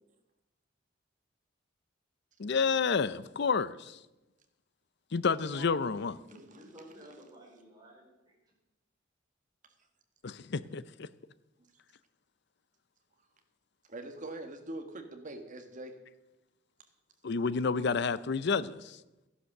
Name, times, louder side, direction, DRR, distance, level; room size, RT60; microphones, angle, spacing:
voice 1, 2.4-4.0 5.1-6.1 10.2-11.1 17.2-19.0, left 5 dB, 60° left, 0.6 m, -30 dB
voice 2, 5.4-8.3, right 1 dB, 20° right, 4.9 m, -52 dB
voice 3, 13.9-16.0, right 2 dB, 40° right, 1.7 m, -42 dB
14.0 x 11.0 x 6.6 m
head